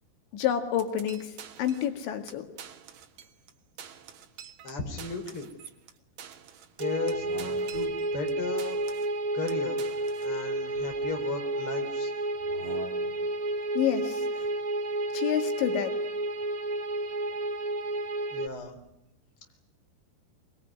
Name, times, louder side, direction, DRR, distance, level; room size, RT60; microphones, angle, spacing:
voice 1, 0.3-2.5 13.8-14.5 15.1-15.9, left 10 dB, 80° left, 6 dB, 4.2 m, -29 dB
sound 1, 0.8-2.0 2.3-2.4 2.6-3.5 3.8-8.3 8.6-9.2 9.5-10.3, right 9 dB, 55° right, 2.2 m, -47 dB
voice 2, 4.6-5.5 6.8-7.3 7.7-8.8 9.3-9.8 10.2-12.1 18.3-18.8, left 4 dB, 30° left, 5 dB, 4.2 m, -35 dB
sound 2, 6.8-18.5, right 2 dB, 85° right, 0.8 m, -31 dB
sound 3, 7.0-8.1 9.4-11.0 12.4-13.4, right 2 dB, 35° right, 2.3 m, -46 dB
25.5 x 21.5 x 9.7 m, 0.81 s
omnidirectional pair, 5.1 m